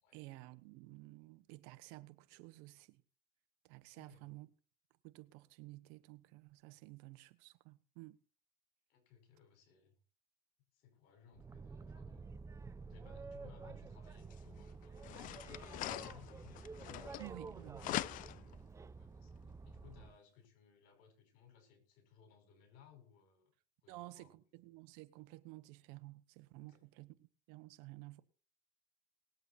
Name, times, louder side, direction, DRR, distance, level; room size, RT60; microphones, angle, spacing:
voice 1, 0.1-3.0 3.6-4.5 5.0-8.2 17.2-18.1 23.9-28.2, right 20 dB, 75° right, 1.2 m, -53 dB
voice 2, 3.9-4.2 8.9-10.0 10.7-12.4 12.9-16.6 18.3-18.6 19.0-23.5 23.8-24.4 26.6-26.8, left 8 dB, 70° left, 5.3 m, -63 dB
Boat Water vehicle, 11.3-20.2, right 4 dB, 20° right, 0.7 m, -50 dB
sound 1, 14.3-14.4 15.0-17.5 17.8-18.6, left 15 dB, 55° left, 0.6 m, -43 dB
19.5 x 8.1 x 4.3 m
supercardioid pair, 105°, 16 cm